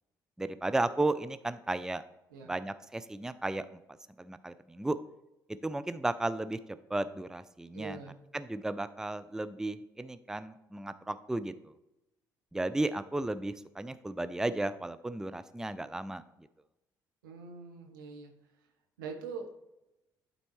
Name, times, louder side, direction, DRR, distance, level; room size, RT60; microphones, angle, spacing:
voice 1, 0.4-2.0 2.5-3.8 4.2-5.0 5.6-6.6 6.9-8.0 8.3-11.7 12.5-16.2, right 2 dB, 5° right, 13 dB, 0.4 m, -34 dB
voice 2, 7.7-8.2 17.2-18.3 19.0-19.7, right 5 dB, 80° right, 3 dB, 0.9 m, -43 dB
12.0 x 4.0 x 3.1 m, 0.93 s
figure-of-eight pair, 50°, 11 cm